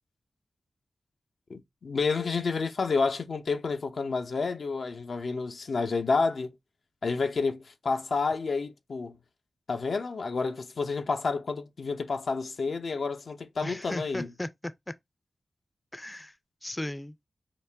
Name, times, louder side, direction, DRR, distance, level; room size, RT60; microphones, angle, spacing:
voice 1, 1.5-6.5 7.0-9.2 9.7-14.3, left 4 dB, 75° left, 0.6 m, -29 dB
voice 2, 13.6-14.9 15.9-16.4 16.6-17.2, left 1 dB, 20° left, 0.4 m, -36 dB
4.0 x 2.2 x 3.3 m
cardioid pair, 45°, 0 cm